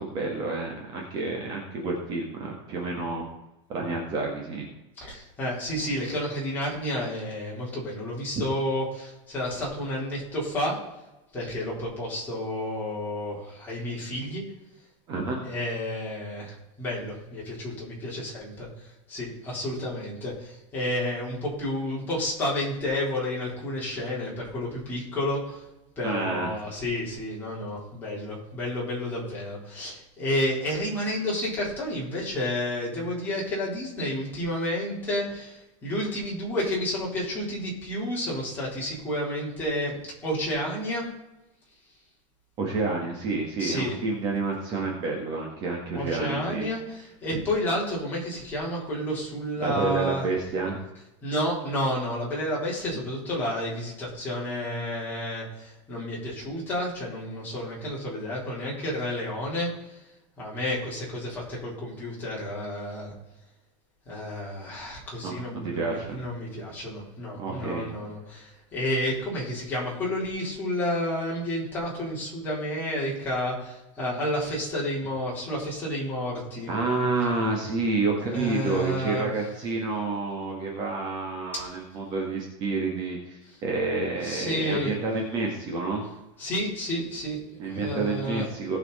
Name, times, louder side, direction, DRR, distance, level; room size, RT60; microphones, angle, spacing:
voice 1, 0.0-3.3 3.7-4.7 8.3-8.4 15.1-15.4 26.0-26.6 42.6-46.7 47.3-47.4 49.6-50.8 65.2-66.2 67.4-67.9 76.7-86.0 87.6-88.8, right 3 dB, 30° right, 0 dB, 1.7 m, -29 dB
voice 2, 5.0-10.8 11.3-14.4 15.4-18.7 19.1-25.6 26.0-41.1 43.6-44.0 45.9-50.3 51.2-60.0 60.4-63.1 64.1-76.7 78.3-79.3 81.5-81.7 84.2-85.0 86.4-88.5, left 1 dB, 10° left, -6 dB, 4.0 m, -31 dB
18.0 x 6.2 x 4.2 m, 0.95 s
supercardioid pair, 175°, 15 cm